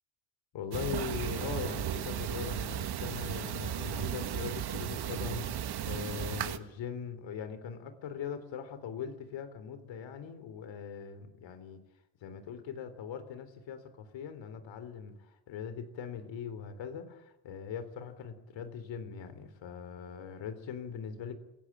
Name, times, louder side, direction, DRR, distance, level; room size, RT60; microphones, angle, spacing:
voice 1, 0.5-11.8 12.2-21.4, left 7 dB, 90° left, 10 dB, 3.7 m, -41 dB
sound 1, 0.7-6.6, right 10 dB, 60° right, 1.6 m, -35 dB
28.0 x 17.5 x 8.9 m, 0.95 s
cardioid pair, 140°, 44 cm